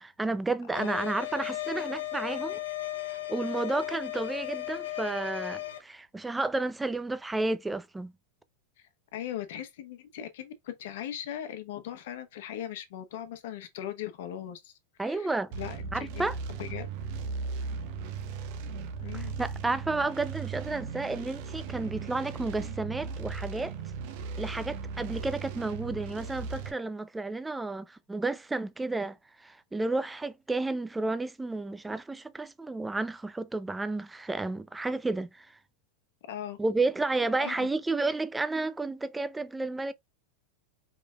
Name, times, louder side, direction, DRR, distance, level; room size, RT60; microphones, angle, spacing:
voice 1, 0.0-2.6 3.3-8.1 15.0-15.5 15.9-16.4 19.1-23.7 24.4-35.6 36.6-39.9, right 3 dB, 10° right, 0.5 m, -31 dB
sound 1, 0.7-5.8, left 15 dB, 90° left, 1.0 m, -36 dB
voice 2, 0.7-1.1 9.1-14.7 15.0-16.3 16.6-16.9 19.0-19.3 36.3-36.6 37.4-37.7, left 11 dB, 70° left, 1.1 m, -39 dB
sound 2, 15.5-26.7, right 5 dB, 60° right, 1.0 m, -37 dB
5.1 x 3.2 x 2.4 m
hypercardioid pair, 115°, 0 cm